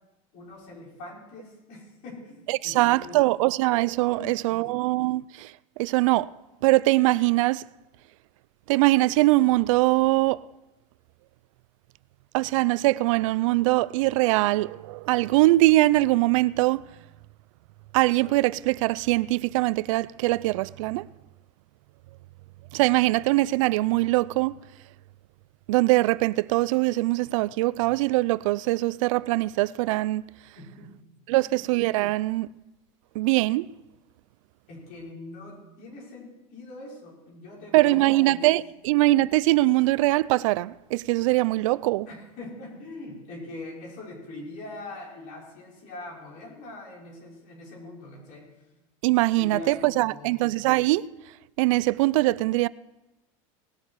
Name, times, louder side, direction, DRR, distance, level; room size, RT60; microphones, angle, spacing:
voice 1, 0.3-3.2 4.1-4.8 30.6-31.0 31.3-31.6 34.7-38.8 42.1-48.5 49.4-50.4, left 2 dB, 55° left, 5.5 m, -42 dB
voice 2, 2.5-6.3 6.6-7.6 8.7-10.4 12.3-16.9 17.9-21.1 22.7-24.5 25.7-30.2 31.3-32.5 33.1-33.7 37.7-42.1 49.0-51.1 51.6-52.7, right 19 dB, 80° right, 0.4 m, -22 dB
19.0 x 7.2 x 6.4 m
supercardioid pair, 135°, 16 cm